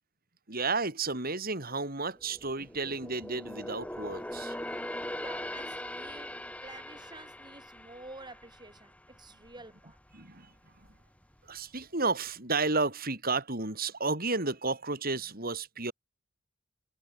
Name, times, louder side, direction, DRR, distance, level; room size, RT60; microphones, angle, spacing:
voice 1, 0.5-4.6 10.1-10.5 11.5-15.9, right 3 dB, 50° right, 7.3 m, -32 dB
sound 1, 2.2-9.6 10.0-10.2 10.8-11.5 11.8-11.9, left 1 dB, 5° left, 3.9 m, -41 dB
voice 2, 4.9-10.0, right 2 dB, 20° right, 7.4 m, -50 dB
head